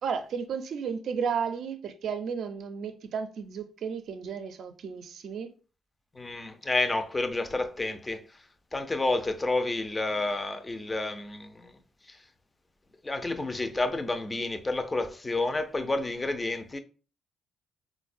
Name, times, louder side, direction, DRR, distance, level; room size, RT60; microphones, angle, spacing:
voice 1, 0.0-5.5, right 6 dB, 65° right, 0.4 m, -33 dB
voice 2, 6.1-11.8 12.0-12.2 13.0-16.8, left 2 dB, 20° left, 0.4 m, -30 dB
3.9 x 2.1 x 2.5 m
cardioid pair, 90°, 0 cm